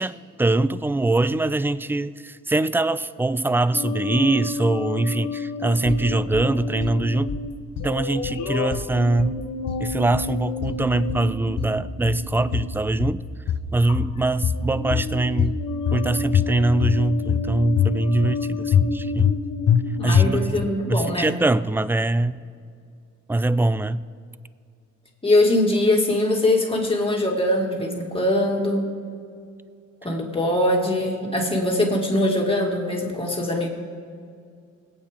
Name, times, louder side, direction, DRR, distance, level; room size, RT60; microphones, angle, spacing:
voice 1, 0.0-7.4 7.8-9.4 9.8-13.2 13.7-15.6 15.9-19.3 20.0-22.5 23.3-24.1, right 2 dB, 10° right, 16 dB, 0.3 m, -23 dB
sound 1, 3.7-13.1 13.9-14.2 14.5-20.2, left 4 dB, 75° left, 1.1 m, -31 dB
sound 2, 5.9-6.5 6.8-7.5 7.8-8.5 8.7-9.4 9.7-10.4 10.6-11.3 11.6-12.3 12.5-13.2 13.5-14.2 14.4-15.1 15.4-16.0 16.3-17.0 17.3-17.9 18.2-18.4 18.7-19.4 19.7-19.8 20.1-20.6, left 9 dB, 55° left, 0.9 m, -23 dB
voice 2, 19.9-21.3 25.2-28.9 30.0-33.7, left 1 dB, 20° left, -1 dB, 2.4 m, -22 dB
21.5 x 8.8 x 3.7 m, 2.3 s
cardioid pair, 90°, 30 cm